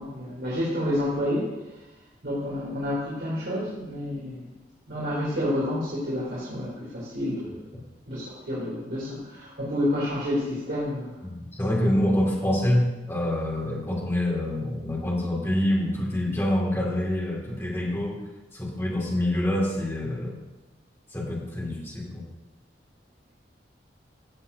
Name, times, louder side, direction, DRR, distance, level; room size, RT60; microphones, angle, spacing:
voice 1, 0.0-1.5 2.2-4.5 4.9-7.6 8.1-11.1, left 1 dB, 65° right, -8 dB, 2.9 m, -29 dB
voice 2, 11.2-18.2 18.5-20.4 21.1-22.2, left 1 dB, 15° left, -4 dB, 2.0 m, -26 dB
16.0 x 7.3 x 2.7 m, 1.1 s
head